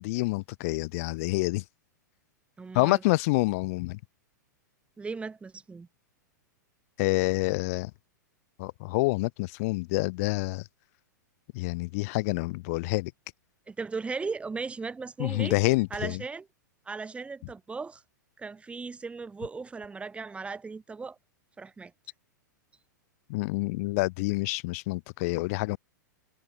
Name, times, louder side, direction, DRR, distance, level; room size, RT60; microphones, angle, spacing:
voice 1, 0.0-1.6 2.7-4.0 7.0-7.9 8.6-10.6 11.5-13.1 15.2-16.2 23.3-25.8, left 24 dB, 50° left, 2.8 m, -27 dB
voice 2, 2.6-3.0 5.0-5.9 13.7-15.6 15.9-16.5 16.9-18.0 18.4-21.2 21.6-21.9, right 4 dB, 10° right, 2.1 m, -37 dB
figure-of-eight pair, 105°, 10 cm